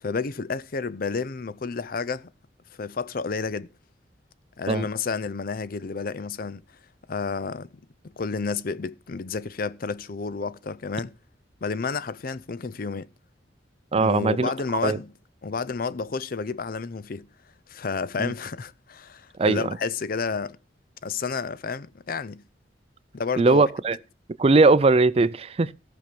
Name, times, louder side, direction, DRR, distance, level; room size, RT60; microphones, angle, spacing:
voice 1, 0.0-2.3 2.8-3.7 4.6-6.6 7.1-7.7 8.2-11.1 11.6-13.1 14.0-15.1 15.4-17.3 17.7-20.6 21.0-22.4 23.1-23.7, left 4 dB, 55° left, 0.6 m, -30 dB
voice 2, 13.9-14.5 14.8-15.0 18.2-18.3 19.4-19.8 23.4-24.0 24.4-25.7, right 3 dB, 35° right, 0.5 m, -20 dB
14.0 x 5.9 x 6.9 m
head